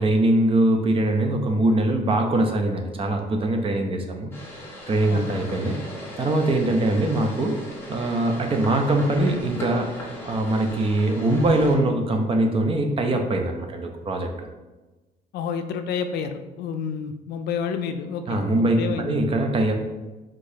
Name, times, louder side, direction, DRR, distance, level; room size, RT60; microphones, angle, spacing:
voice 1, 0.0-4.3 4.9-5.8 6.2-7.6 7.9-9.9 10.3-14.5 18.3-18.8 19.0-19.7, right 1 dB, 35° right, 4 dB, 0.7 m, -22 dB
sound 1, 4.3-11.8, left 1 dB, 15° left, 1.3 m, -38 dB
voice 2, 15.3-19.2, left 6 dB, 75° left, 7 dB, 0.4 m, -30 dB
4.9 x 3.7 x 2.8 m, 1.1 s
cardioid pair, 110°, 17 cm